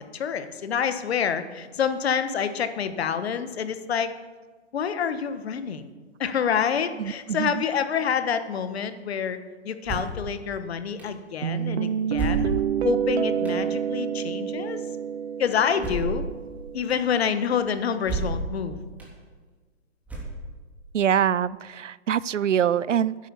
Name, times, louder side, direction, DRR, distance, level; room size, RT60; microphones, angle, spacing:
voice 1, 0.1-4.1 4.7-5.9 6.2-9.4 9.6-12.5 12.8-14.8 15.4-16.2 16.7-18.8, left 7 dB, 60° left, 11 dB, 1.3 m, -27 dB
voice 2, 7.0-7.6 20.9-23.2, right 9 dB, 90° right, 20 dB, 0.5 m, -24 dB
sound 1, 9.8-10.2 11.0-11.1 12.1-12.8 13.4-13.6 15.8-16.2 16.9-17.0 18.0-18.5 19.0-19.1 20.1-20.6, right 2 dB, 5° right, 3.2 m, -30 dB
sound 2, 11.4-17.1, right 8 dB, 65° right, 1.0 m, -28 dB
10.5 x 10.0 x 6.9 m, 1.4 s
hypercardioid pair, 135°, 36 cm